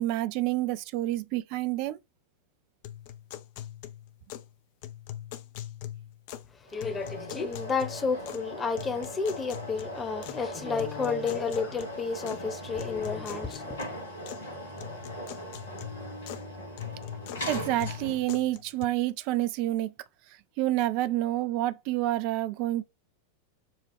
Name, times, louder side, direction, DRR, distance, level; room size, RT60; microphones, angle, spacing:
voice 1, 0.0-2.0 17.5-19.9 20.6-22.8, right 15 dB, 45° right, 0.5 m, -28 dB
sound 1, 2.8-4.5 4.8-6.5 6.8-8.5 8.8-10.4 10.8-12.4 12.8-14.5 14.8-16.5 16.8-18.9, left 12 dB, 50° left, 0.6 m, -42 dB
voice 2, 6.5-13.8, left 5 dB, 20° left, 1.0 m, -31 dB
sound 2, 6.7-18.4, equal, 70° left, 2.3 m, -40 dB
7.0 x 2.4 x 3.2 m
figure-of-eight pair, 90°, 0 cm